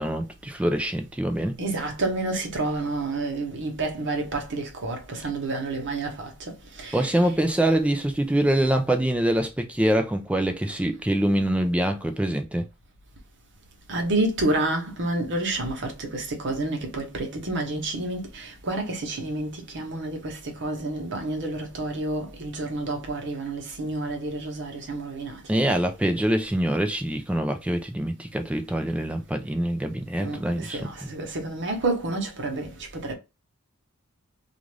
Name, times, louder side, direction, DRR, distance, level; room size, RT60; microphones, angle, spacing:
voice 1, 0.0-1.5 6.9-12.6 25.5-31.1, right 1 dB, 5° right, 0.3 m, -24 dB
voice 2, 1.6-6.3 6.8-7.1 13.9-25.6 30.2-32.7 32.9-33.1, right 2 dB, 55° right, 0.9 m, -29 dB
2.5 x 2.4 x 3.1 m
head